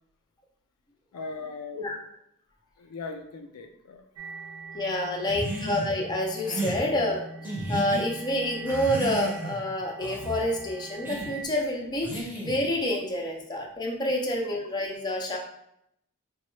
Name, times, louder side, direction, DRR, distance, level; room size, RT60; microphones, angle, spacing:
voice 1, 1.1-2.1 2.8-4.1 14.2-14.5, left 4 dB, 70° left, 5 dB, 0.4 m, -40 dB
sound 1, 4.2-11.4, right 3 dB, 70° right, 0.4 m, -43 dB
voice 2, 4.7-15.4, left 1 dB, 20° left, -1 dB, 0.6 m, -28 dB
sound 2, 5.3-5.9 6.4-6.8 7.4-8.0 8.6-9.6 10.0-10.4 11.0-11.3 12.0-12.7, right 2 dB, 10° right, 0.8 m, -33 dB
4.1 x 2.2 x 3.1 m, 0.76 s
head